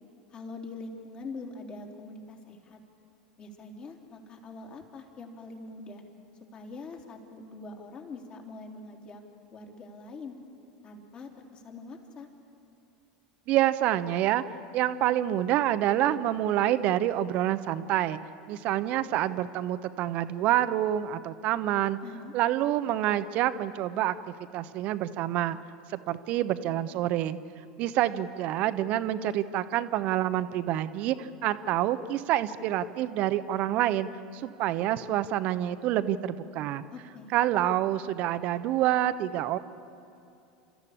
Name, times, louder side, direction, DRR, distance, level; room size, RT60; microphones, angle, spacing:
voice 1, 0.3-2.8 3.4-6.0 6.5-9.2 9.5-10.4 10.8-12.3 22.0-22.3 36.9-37.3, left 3 dB, 35° left, 2 dB, 3.5 m, -43 dB
voice 2, 13.5-14.4 14.7-18.2 18.5-22.0 22.3-24.2 24.5-25.6 25.9-27.4 27.8-36.8 37.3-39.6, right 13 dB, 50° right, 13 dB, 0.9 m, -27 dB
30.0 x 14.0 x 8.7 m, 2.7 s
figure-of-eight pair, 80°, 3 cm